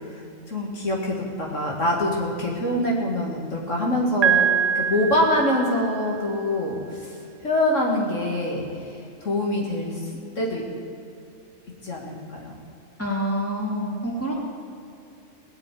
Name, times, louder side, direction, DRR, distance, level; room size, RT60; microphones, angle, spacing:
voice 1, 0.5-4.5 4.8-7.1 7.4-8.6 9.2-10.0 10.4-10.6 11.8-12.5, left 1 dB, 70° left, -2 dB, 2.5 m, -24 dB
Piano, 4.2-6.1, right 8 dB, 70° right, 0.4 m, -23 dB
voice 2, 13.0-14.3, equal, 10° left, -4 dB, 3.0 m, -27 dB
19.0 x 6.5 x 9.3 m, 2.6 s
omnidirectional pair, 1.3 m